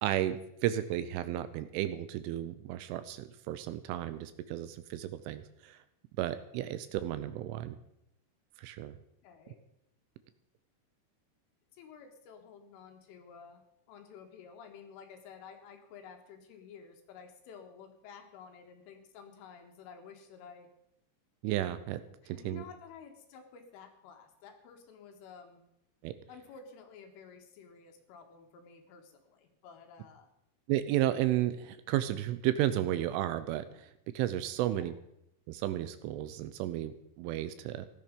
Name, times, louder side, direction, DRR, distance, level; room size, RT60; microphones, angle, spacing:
voice 1, 0.0-5.8 6.2-7.8 8.6-8.9 21.4-22.6 26.0-26.1 30.7-34.9 35.5-37.9, right 13 dB, 80° right, 12 dB, 3.1 m, -33 dB
voice 2, 9.2-9.6 11.7-13.6 13.9-20.7 22.2-25.6 26.3-30.3 34.7-34.9, left 6 dB, 75° left, 5 dB, 4.0 m, -52 dB
15.5 x 13.0 x 5.2 m, 0.79 s
omnidirectional pair, 5.9 m